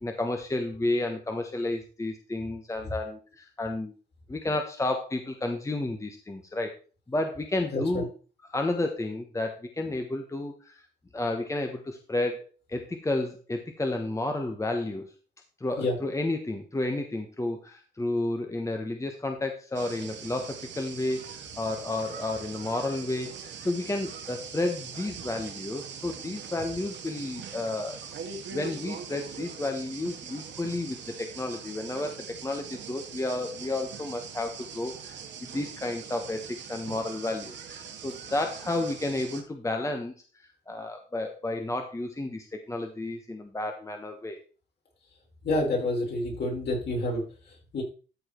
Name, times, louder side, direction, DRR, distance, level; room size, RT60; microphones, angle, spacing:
voice 1, 0.0-3.9 4.3-6.8 7.1-8.1 8.5-10.7 11.1-12.4 12.7-15.1 15.6-28.0 28.5-40.1 40.7-44.4, left 2 dB, 15° left, 4 dB, 1.2 m, -31 dB
voice 2, 7.7-8.0 15.8-15.9 45.4-47.8, left 2 dB, 55° left, -1 dB, 5.7 m, -29 dB
sound 1, 19.7-39.4, right 7 dB, 65° right, 1.8 m, -42 dB
13.5 x 4.8 x 4.5 m, 0.37 s
cardioid pair, 90°, 20 cm